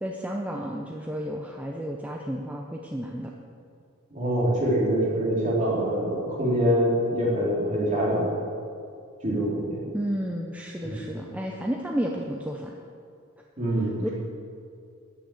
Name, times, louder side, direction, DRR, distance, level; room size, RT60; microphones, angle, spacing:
voice 1, 0.0-3.3 9.9-12.8 14.0-14.1, equal, 5° right, 0 dB, 0.7 m, -32 dB
voice 2, 4.1-8.3 9.2-9.8 10.8-11.0 13.6-14.1, equal, 35° right, -5 dB, 3.6 m, -25 dB
13.5 x 6.5 x 8.4 m, 2.4 s
head